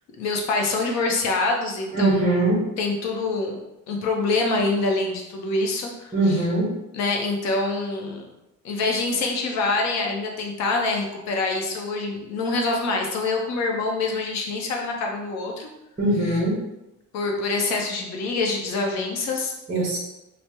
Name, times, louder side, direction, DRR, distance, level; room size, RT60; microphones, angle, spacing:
voice 1, 0.2-2.5 2.8-3.6 3.9-6.4 6.9-8.3 8.6-15.7 17.1-19.5, left 3 dB, 60° left, 1 dB, 0.6 m, -25 dB
voice 2, 1.9-2.6 6.1-6.7 16.0-16.6 19.7-20.0, right 1 dB, 20° right, -6 dB, 0.7 m, -21 dB
3.3 x 2.0 x 2.9 m, 0.92 s
cardioid pair, 165°, 31 cm